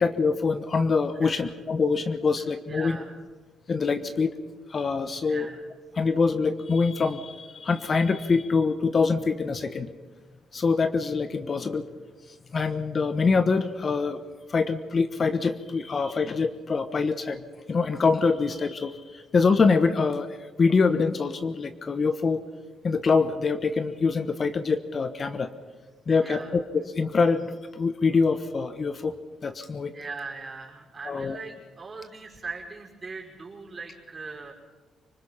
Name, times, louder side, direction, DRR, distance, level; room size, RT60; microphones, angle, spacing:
voice 1, 0.0-3.0 3.7-4.4 4.7-5.5 5.9-9.9 10.5-11.8 12.5-14.2 14.5-17.4 17.7-20.3 20.6-22.4 22.8-25.5 26.1-29.1 29.4-29.9 31.0-31.4, left 4 dB, 40° left, 10 dB, 1.2 m, -24 dB
voice 2, 1.2-1.5 2.7-3.1 5.3-5.6 26.2-26.6 29.9-34.5, right 4 dB, 30° right, 0 dB, 5.3 m, -40 dB
25.0 x 20.0 x 5.8 m, 1.3 s
cardioid pair, 90°, 0 cm